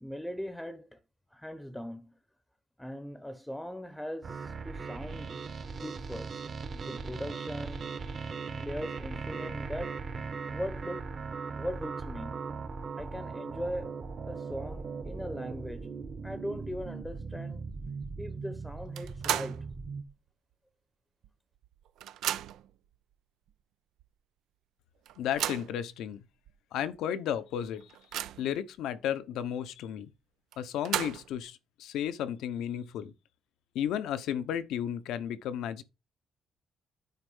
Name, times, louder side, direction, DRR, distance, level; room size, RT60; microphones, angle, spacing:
voice 1, 0.0-1.0 1.3-2.1 2.8-5.4 5.8-6.5 6.7-7.9 8.6-10.0 10.5-11.2 11.5-12.5 13.0-14.0 14.3-15.9 16.2-17.6 18.2-19.7, equal, 5° left, 0.8 m, -40 dB
sound 1, 4.2-20.0, right 5 dB, 45° right, 1.4 m, -39 dB
sound 2, 18.9-19.7 20.1-20.2 21.2-21.3 21.6-22.7 23.5-23.6 24.0-24.1 25.0-25.8 26.5-26.6 26.9-27.0 27.5-28.6 30.5-31.4, right 12 dB, 85° right, 0.6 m, -35 dB
voice 2, 25.2-26.2 26.7-27.8 28.4-30.1 30.6-33.1 33.7-35.8, left 9 dB, 85° left, 0.9 m, -33 dB
9.6 x 4.4 x 5.6 m
cardioid pair, 90°, 0 cm